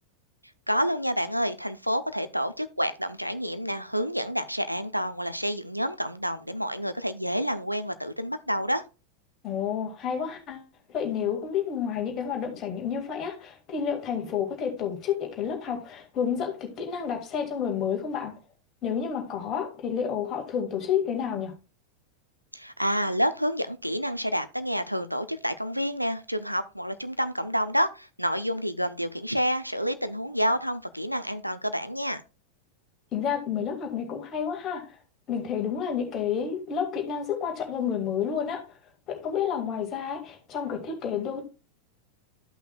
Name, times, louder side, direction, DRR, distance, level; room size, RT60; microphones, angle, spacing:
voice 1, 0.7-8.8 22.5-32.2, equal, 90° right, 0.5 m, -28 dB
voice 2, 9.4-18.3 18.8-21.5 33.1-35.0 35.3-38.8 39.1-41.4, left 7 dB, 30° left, 2.0 m, -30 dB
13.0 x 5.7 x 2.3 m
figure-of-eight pair, 90°, 0 cm